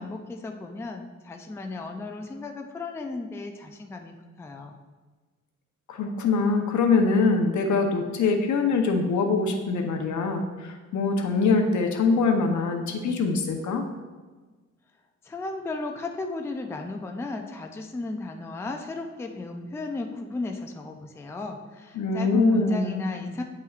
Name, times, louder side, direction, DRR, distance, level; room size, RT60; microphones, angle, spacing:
voice 1, 0.0-4.8 15.2-23.4, left 3 dB, 10° left, 3 dB, 0.4 m, -35 dB
voice 2, 5.9-13.8 22.0-23.0, left 4 dB, 75° left, 3 dB, 0.9 m, -23 dB
9.2 x 5.5 x 2.5 m, 1.3 s
wide cardioid pair, 160°, 29 cm